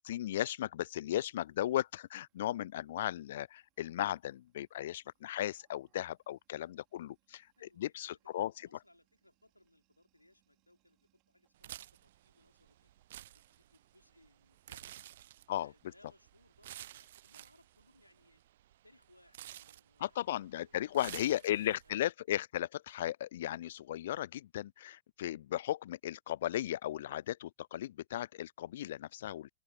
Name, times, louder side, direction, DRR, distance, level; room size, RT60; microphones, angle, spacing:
voice 1, 0.0-8.7 15.5-15.7 20.0-29.5, left 13 dB, 60° left, 0.3 m, -36 dB
sound 1, 1.2-18.5, right 23 dB, 40° right, 5.5 m, -81 dB
voice 2, 7.6-12.9 13.3-14.9 15.6-18.4 18.8-20.2 20.5-20.7 21.1-22.1, left 1 dB, 85° left, 3.3 m, -67 dB
sound 2, 11.6-21.9, right 13 dB, 60° right, 0.3 m, -52 dB
figure-of-eight pair, 90°, 0 cm